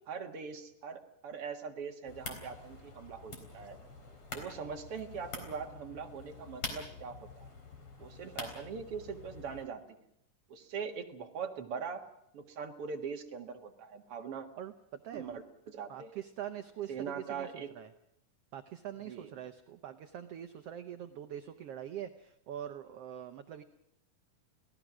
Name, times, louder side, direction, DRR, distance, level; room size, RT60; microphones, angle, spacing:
voice 1, 0.1-3.8 4.3-7.5 8.0-10.0 10.5-12.1 12.3-14.5 15.1-16.1 16.9-17.7 19.1-19.3, right 6 dB, 50° right, 4 dB, 2.4 m, -42 dB
sound 1, 2.0-9.7, left 3 dB, 40° left, 4.7 m, -46 dB
voice 2, 14.6-15.3 15.9-17.9 18.5-23.6, right 10 dB, 70° right, 8 dB, 1.5 m, -43 dB
29.0 x 18.0 x 6.2 m, 0.76 s
omnidirectional pair, 3.8 m